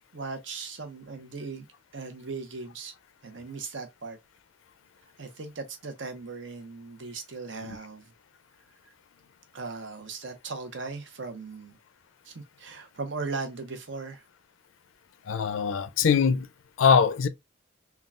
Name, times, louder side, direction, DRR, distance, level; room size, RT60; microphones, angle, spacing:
voice 1, 0.0-1.7 1.9-2.9 3.2-4.2 5.2-8.0 9.5-11.8 12.3-14.2, right 4 dB, 70° right, 0.8 m, -38 dB
voice 2, 15.3-16.5 16.8-17.3, left 6 dB, 85° left, 0.4 m, -22 dB
3.6 x 2.3 x 2.4 m
head